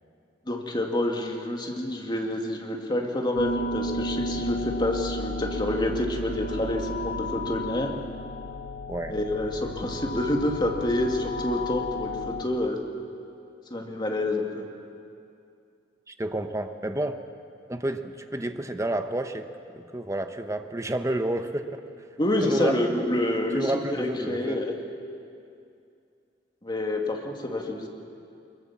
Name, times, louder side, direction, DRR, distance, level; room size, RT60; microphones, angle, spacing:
voice 1, 0.5-7.9 9.1-12.8 13.7-14.6 22.2-24.7 26.6-27.9, left 1 dB, 25° left, 1 dB, 2.3 m, -28 dB
sound 1, 3.3-12.4, left 1 dB, 75° left, 1.4 m, -33 dB
voice 2, 16.1-17.2 17.7-19.5 19.7-21.8 22.4-22.8 23.5-24.6, right 1 dB, 15° right, 7 dB, 1.0 m, -30 dB
22.5 x 21.5 x 7.4 m, 2.5 s
head